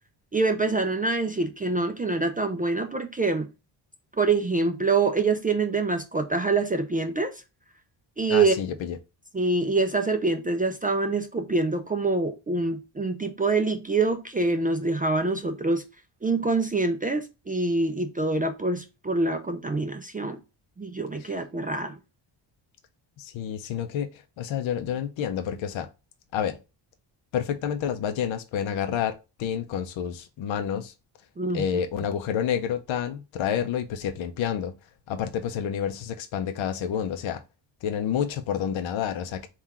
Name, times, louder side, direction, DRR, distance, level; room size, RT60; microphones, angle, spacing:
voice 1, 0.3-3.5 4.2-7.4 8.2-8.6 9.3-15.8 16.2-20.4 20.8-22.0 31.4-31.6, right 3 dB, 20° right, 0.3 m, -25 dB
voice 2, 8.3-9.0 21.2-21.3 23.2-25.9 26.3-26.6 27.3-30.9 31.5-34.7 35.1-37.4 37.8-39.5, left 8 dB, 70° left, 0.6 m, -29 dB
3.7 x 2.4 x 4.1 m
cardioid pair, 100°, 50 cm